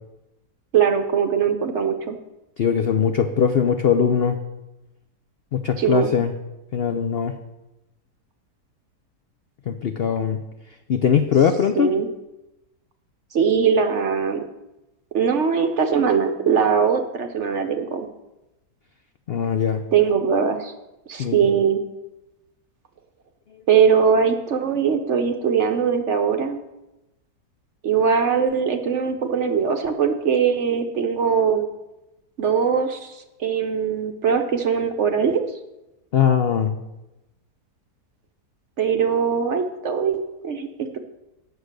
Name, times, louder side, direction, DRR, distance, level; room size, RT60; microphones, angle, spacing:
voice 1, 0.7-2.2 5.8-6.1 11.8-12.1 13.3-14.4 15.1-18.1 19.9-20.7 21.1-21.8 23.7-26.6 27.8-31.7 32.4-35.4 38.8-41.0, right 6 dB, 55° right, 6 dB, 0.9 m, -21 dB
voice 2, 2.6-4.4 5.5-6.3 6.7-7.3 9.7-10.4 10.9-11.9 19.3-19.8 21.2-21.5 36.1-36.7, left 7 dB, 75° left, 7 dB, 0.5 m, -20 dB
9.5 x 6.5 x 6.5 m, 0.98 s
omnidirectional pair, 1.8 m